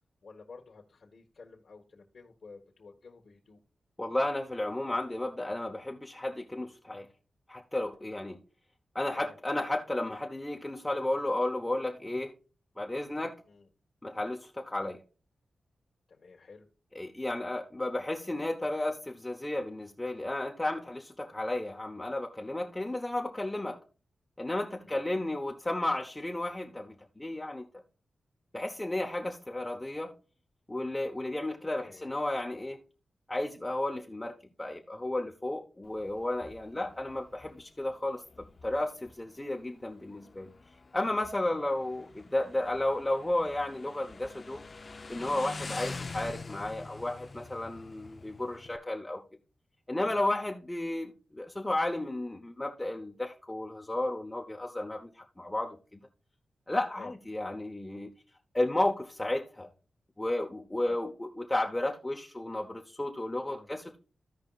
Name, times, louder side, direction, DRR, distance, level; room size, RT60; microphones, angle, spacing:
voice 1, 0.2-3.6 9.0-9.4 13.5-13.7 16.1-16.7 24.8-25.0 31.8-32.1 36.7-37.0 41.5-41.7 49.9-50.2 57.0-57.1 60.9-61.0 63.4-63.7, left 4 dB, 55° left, 1.4 m, -51 dB
voice 2, 4.0-7.1 7.5-8.4 8.9-12.3 12.8-13.3 14.0-15.0 16.9-23.8 24.4-27.6 28.5-30.1 30.7-32.8 33.3-38.2 38.6-40.5 40.9-44.6 45.1-49.2 49.9-55.8 56.7-58.1 58.5-59.7 60.2-64.0, left 1 dB, 15° left, 0.9 m, -33 dB
Motorcycle, 35.8-48.8, left 3 dB, 40° left, 0.6 m, -46 dB
15.5 x 5.1 x 2.4 m
wide cardioid pair, 95°, 0 cm